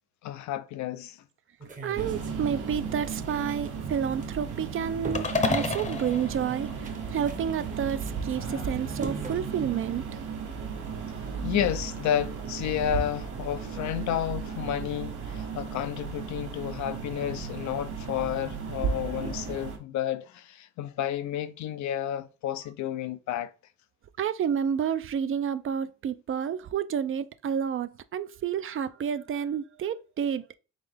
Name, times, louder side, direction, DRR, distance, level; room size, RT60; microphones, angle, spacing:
voice 1, 0.2-1.2 8.4-8.7 11.4-23.5, left 11 dB, 70° left, 0.5 m, -31 dB
sound 1, 1.6-9.4, right 4 dB, 25° right, 0.8 m, -43 dB
voice 2, 1.8-10.0 24.2-30.5, right 8 dB, 45° right, 0.4 m, -30 dB
sound 2, 2.0-19.8, right 6 dB, 75° right, 1.2 m, -35 dB
sound 3, 5.1-7.5, left 3 dB, 25° left, 0.7 m, -31 dB
3.8 x 3.6 x 3.4 m
cardioid pair, 90°, 30 cm